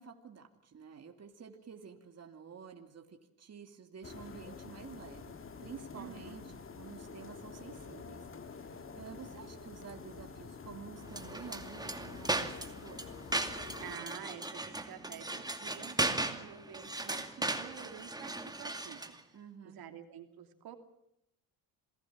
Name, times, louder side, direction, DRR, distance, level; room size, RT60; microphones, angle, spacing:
voice 1, 0.0-5.3 5.6-13.0 19.3-19.8, right 6 dB, 40° right, 4 dB, 2.8 m, -50 dB
sound 1, 4.0-13.9, left 5 dB, 35° left, 2.1 m, -48 dB
voice 2, 5.9-6.4 13.8-19.2 19.6-20.8, right 9 dB, 70° right, 6 dB, 3.0 m, -49 dB
sound 2, 11.1-19.2, right 2 dB, 10° right, 2.5 m, -37 dB
27.0 x 18.0 x 7.5 m, 0.81 s
cardioid pair, 90°, 38 cm